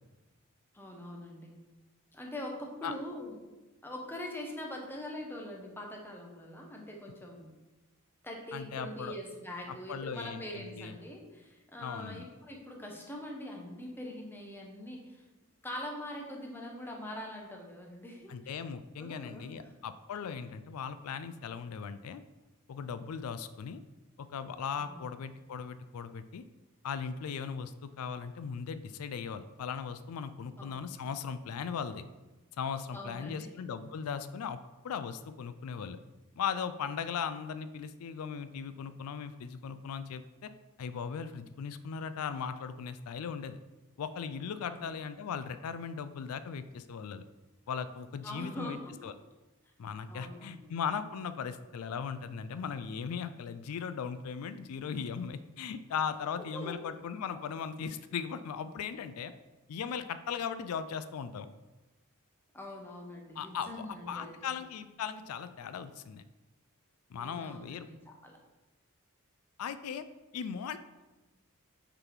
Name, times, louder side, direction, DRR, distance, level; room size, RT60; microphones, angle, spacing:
voice 1, 0.7-1.5 2.1-3.4 3.8-7.5 8.2-15.2 15.6-18.6 19.0-19.7 24.8-25.1 30.6-30.9 32.9-33.5 44.6-44.9 48.2-49.0 50.1-50.7 56.4-56.8 62.5-64.5 67.2-68.4, left 1 dB, 10° left, 0 dB, 0.9 m, -43 dB
voice 2, 8.5-9.1 9.7-10.9 11.8-12.3 18.3-22.2 22.7-23.8 24.2-26.4 26.8-32.0 32.6-34.6 34.8-36.0 36.4-40.5 40.8-43.6 44.0-47.2 47.7-48.8 49.0-49.1 49.8-59.3 59.7-61.5 63.4-66.2 67.1-67.9 69.6-70.1 70.3-70.8, left 6 dB, 90° left, 12 dB, 0.4 m, -38 dB
6.4 x 4.1 x 4.5 m, 1.1 s
head